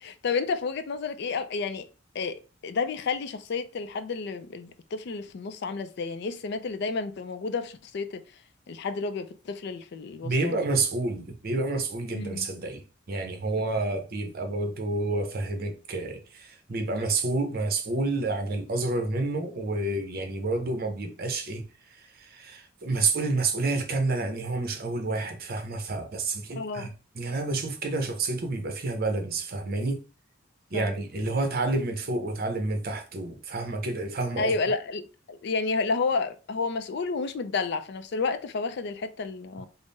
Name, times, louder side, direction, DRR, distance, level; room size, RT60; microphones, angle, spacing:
voice 1, 0.0-1.9 2.1-8.2 8.7-10.6 12.1-12.5 26.6-26.9 30.7-30.9 34.4-39.7, left 4 dB, 60° left, 0.4 m, -31 dB
voice 2, 10.2-12.8 13.1-21.6 22.2-30.0 30.7-34.5, right 3 dB, 50° right, 0.7 m, -29 dB
3.6 x 2.0 x 3.9 m
head